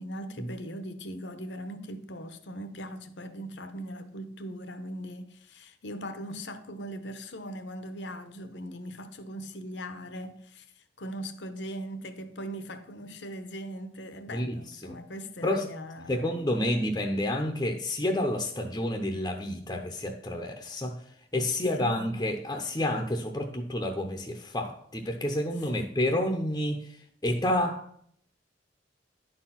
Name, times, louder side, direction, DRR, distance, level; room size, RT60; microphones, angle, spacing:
voice 1, 0.0-16.8 21.7-22.1 25.6-26.0, equal, 75° left, 1.0 m, -40 dB
voice 2, 16.1-20.9 21.3-27.0 27.2-28.0, left 1 dB, 20° left, 0.7 m, -29 dB
10.5 x 4.5 x 5.7 m
head